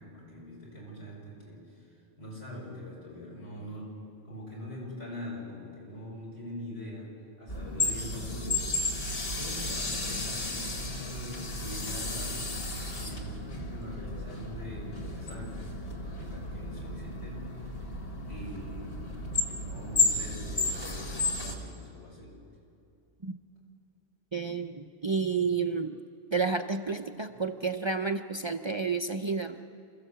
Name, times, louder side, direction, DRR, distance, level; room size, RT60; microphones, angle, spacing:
voice 1, 0.0-3.9 4.2-8.7 9.3-12.7 13.0-18.0 18.3-19.0 19.4-22.4, left 1 dB, 90° left, -5 dB, 7.0 m, -43 dB
sound 1, 7.5-21.5, left 2 dB, 65° left, 2.3 m, -33 dB
voice 2, 24.3-26.0 26.3-29.6, right 4 dB, 35° right, 6 dB, 0.6 m, -30 dB
27.5 x 15.0 x 8.0 m, 2.6 s
omnidirectional pair, 1.1 m